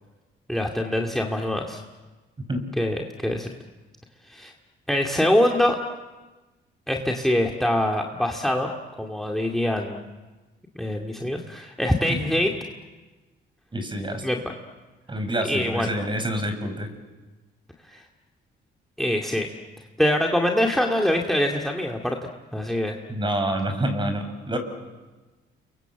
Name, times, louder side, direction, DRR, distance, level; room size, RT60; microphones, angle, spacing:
voice 1, 0.5-1.8 2.8-3.5 4.3-4.5 4.9-5.8 6.9-8.7 9.0-10.0 10.7-12.5 14.2-14.4 15.4-15.9 17.9-18.0 19.0-19.5 20.0-22.2 22.5-22.9, left 1 dB, ahead, 1 dB, 2.2 m, -24 dB
voice 2, 13.7-14.2 15.1-16.9 23.1-24.6, right 1 dB, 25° right, 7 dB, 5.9 m, -27 dB
30.0 x 23.5 x 8.0 m, 1.2 s
cardioid pair, 90°, 20 cm